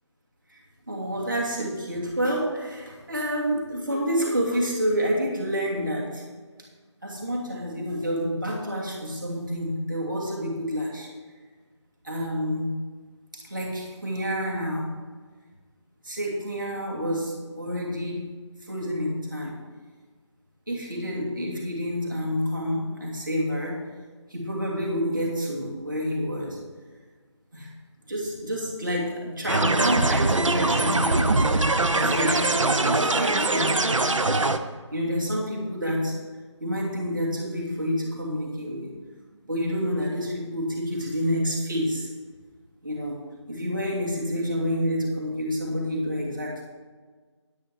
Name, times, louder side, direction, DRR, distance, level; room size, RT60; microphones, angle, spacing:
voice 1, 0.9-6.2 7.0-11.1 12.0-12.7 13.3-14.9 16.0-18.2 18.6-19.6 20.7-23.8 24.3-26.6 27.5-27.7 28.1-34.1 34.9-36.2 36.6-38.9 39.4-42.1 42.8-43.2 43.5-46.6, equal, 40° right, -3 dB, 2.8 m, -28 dB
sound 1, 29.5-34.6, right 2 dB, 85° right, 0.9 m, -22 dB
9.9 x 9.4 x 4.6 m, 1.4 s
figure-of-eight pair, 180°, 16 cm